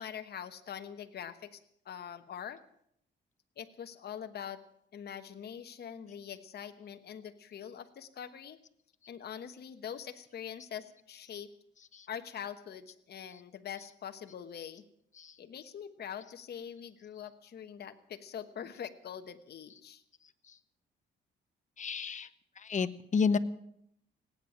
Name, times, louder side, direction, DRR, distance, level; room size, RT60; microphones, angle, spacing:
voice 1, 0.0-1.6 1.8-2.6 3.6-4.6 4.9-8.6 9.1-11.5 12.1-14.8 15.4-20.0, left 8 dB, 55° left, 7 dB, 1.2 m, -43 dB
voice 2, 21.8-22.3 22.6-23.4, left 5 dB, 40° left, 13 dB, 1.0 m, -30 dB
18.0 x 9.0 x 8.8 m, 0.73 s
cardioid pair, 90°, 20 cm